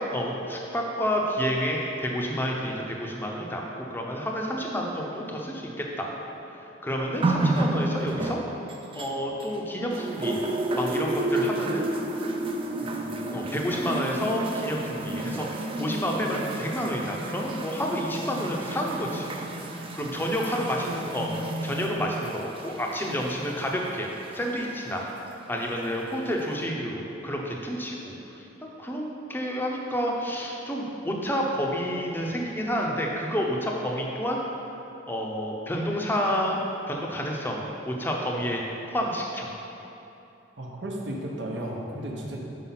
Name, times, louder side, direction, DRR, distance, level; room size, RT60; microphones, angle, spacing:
voice 1, 0.0-6.1 6.5-8.4 8.9-10.4 10.7-11.8 12.8-19.3 19.6-24.1 24.3-25.1 25.5-34.4 35.1-38.6 38.9-39.5 42.2-42.3, equal, 10° left, -1 dB, 0.7 m, -29 dB
sound 1, 7.2-9.6 9.9-24.6 25.5-25.6, right 2 dB, 30° right, 0.4 m, -31 dB
voice 2, 40.6-42.4, right 1 dB, 70° right, -2 dB, 0.9 m, -34 dB
5.8 x 5.2 x 5.7 m, 2.9 s
head